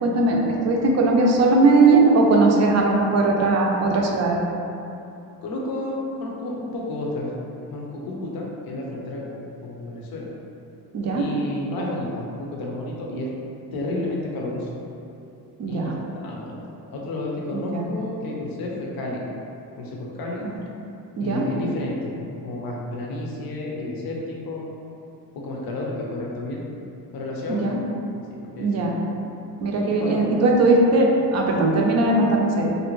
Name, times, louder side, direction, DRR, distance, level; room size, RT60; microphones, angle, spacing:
voice 1, 0.0-4.4 10.9-11.2 15.6-15.9 17.5-17.9 21.2-21.5 27.5-27.8 28.6-29.0 29.6-32.7, right 2 dB, 40° right, -1 dB, 0.4 m, -19 dB
voice 2, 5.4-7.3 7.7-10.3 11.1-13.3 13.7-14.7 15.7-16.6 16.9-19.2 19.8-20.5 21.2-24.7 25.3-26.6 27.1-27.7 28.3-28.7 29.8-30.2, left 2 dB, 60° left, -3 dB, 0.6 m, -31 dB
2.6 x 2.1 x 2.9 m, 2.7 s
cardioid pair, 90°, 40 cm